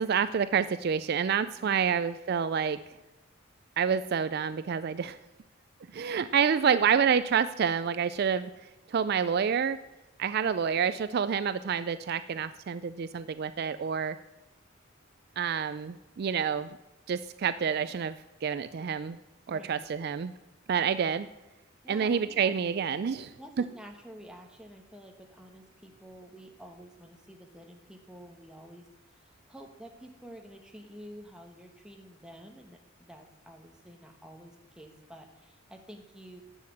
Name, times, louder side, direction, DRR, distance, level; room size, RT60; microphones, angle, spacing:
voice 1, 0.0-2.8 3.8-5.2 5.9-8.5 8.9-9.8 10.2-14.2 15.4-16.8 17.1-18.1 18.4-19.2 19.5-20.3 20.7-21.3 21.9-23.3, right 7 dB, 50° right, 13 dB, 0.4 m, -28 dB
voice 2, 6.3-6.9 19.5-19.9 21.8-22.5 23.4-36.4, equal, 5° right, 3 dB, 1.3 m, -49 dB
10.5 x 7.6 x 7.7 m, 1.0 s
head